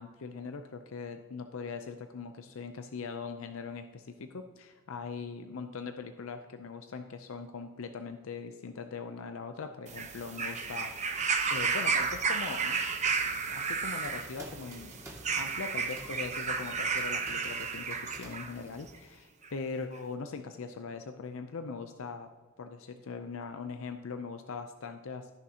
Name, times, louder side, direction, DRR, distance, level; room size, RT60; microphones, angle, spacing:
voice 1, 0.0-10.9 11.5-12.8 13.5-14.9 15.3-22.3 22.6-25.3, left 5 dB, 70° left, 7 dB, 0.5 m, -41 dB
sound 1, 9.9-18.5 19.4-19.5, right 5 dB, 35° right, 0.8 m, -32 dB
sound 2, 12.7-18.9, right 1 dB, 15° right, 2.0 m, -51 dB
15.0 x 6.2 x 2.8 m, 1.3 s
head